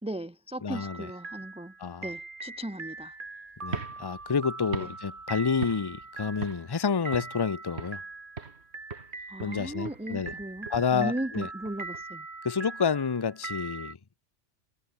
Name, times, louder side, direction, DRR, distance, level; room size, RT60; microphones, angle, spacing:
voice 1, 0.0-1.7 2.0-3.2 4.8-4.9 9.3-12.3, right 1 dB, 5° right, 0.9 m, -37 dB
voice 2, 0.6-1.1 1.8-2.1 3.6-8.0 9.4-10.3 10.7-11.5 12.4-14.0, left 6 dB, 25° left, 0.7 m, -29 dB
sound 1, 0.7-13.9, right 3 dB, 45° right, 2.5 m, -42 dB
sound 2, 3.6-6.1 6.4-6.8 7.1-8.1 8.4-8.7 8.9-12.0, right 4 dB, 65° right, 2.1 m, -40 dB
omnidirectional pair, 1.2 m